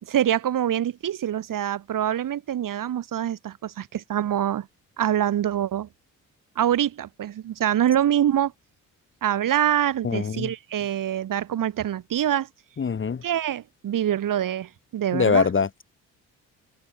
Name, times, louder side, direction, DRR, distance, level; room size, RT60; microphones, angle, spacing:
voice 1, 0.0-4.7 5.0-5.9 6.5-8.5 9.2-12.5 13.2-15.5, right 10 dB, 50° right, 1.7 m, -25 dB
voice 2, 10.0-10.5 12.8-13.2 15.1-15.8, left 6 dB, 30° left, 1.2 m, -23 dB
hypercardioid pair, 45°, 40 cm